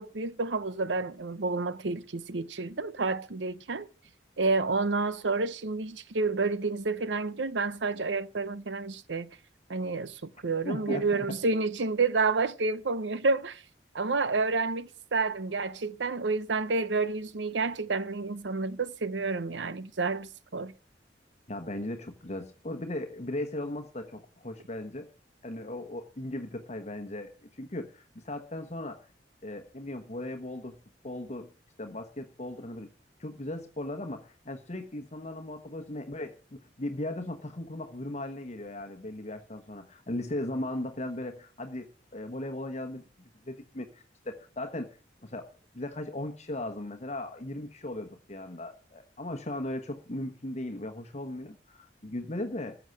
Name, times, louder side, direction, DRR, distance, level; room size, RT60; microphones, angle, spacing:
voice 1, 0.0-3.9 4.4-9.3 9.7-13.6 13.9-20.7, right 3 dB, 90° right, 0.8 m, -29 dB
voice 2, 10.6-11.4 21.5-25.1 25.4-29.1 29.4-30.8 31.0-31.5 31.8-32.9 33.2-44.9 45.2-45.5 45.7-52.8, left 1 dB, 40° left, 1.1 m, -37 dB
15.0 x 7.1 x 7.7 m
head